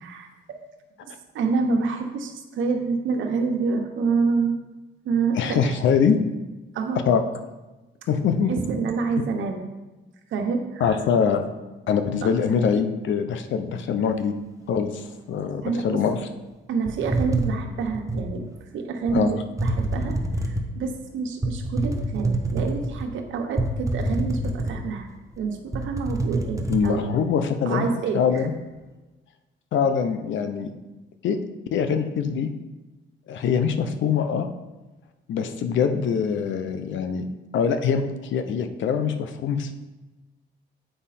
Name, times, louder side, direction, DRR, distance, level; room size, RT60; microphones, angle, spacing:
voice 1, 0.0-0.6 1.0-4.6 5.0-5.8 6.7-7.0 8.5-9.7 10.3-11.0 12.2-12.3 15.6-16.0 16.7-18.4 18.7-25.1 25.4-27.1 27.6-28.5, right 4 dB, 75° right, 4 dB, 1.1 m, -27 dB
voice 2, 5.3-6.2 7.1-7.2 8.1-8.5 10.8-11.5 11.9-14.3 14.7-16.2 19.1-19.3 26.7-27.9 28.1-28.5 29.7-30.7 31.2-31.4 31.7-32.5 33.3-34.5 35.3-37.3 37.5-39.7, left 6 dB, 70° left, 8 dB, 0.8 m, -23 dB
sound 1, 16.9-18.3 19.1-19.2 19.6-20.7 21.4-23.1 23.6-25.0 25.3-25.4 25.7-26.9, right 2 dB, 15° right, 0.9 m, -26 dB
7.9 x 5.0 x 4.3 m, 1.1 s
cardioid pair, 90°, 20 cm